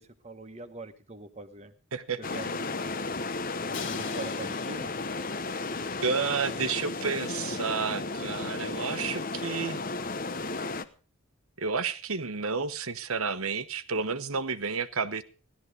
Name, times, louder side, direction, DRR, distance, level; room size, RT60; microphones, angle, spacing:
voice 1, 0.0-1.7 2.3-2.7 3.8-4.9, right 3 dB, 30° right, 1.4 m, -42 dB
voice 2, 1.9-2.2 6.0-9.8 11.6-15.2, right 5 dB, 75° right, 1.2 m, -31 dB
sound 1, 2.2-10.9, left 3 dB, 40° left, 1.0 m, -34 dB
Crash cymbal, 3.7-5.7, left 7 dB, 55° left, 1.4 m, -44 dB
17.0 x 12.5 x 5.0 m
head